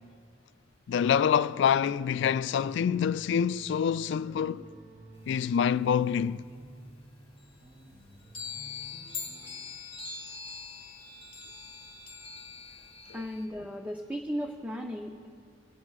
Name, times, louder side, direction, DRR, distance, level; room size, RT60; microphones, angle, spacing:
voice 1, 0.9-4.7 5.3-6.5 13.1-13.2, left 7 dB, 65° left, 0.3 m, -26 dB
sound 1, 2.1-9.6, right 1 dB, 85° right, 3.2 m, -52 dB
sound 2, 5.2-6.7 7.0-7.1 7.4-13.5, left 5 dB, 30° left, 1.2 m, -43 dB
voice 2, 13.1-15.3, equal, 10° right, 0.5 m, -36 dB
28.0 x 12.0 x 2.4 m
head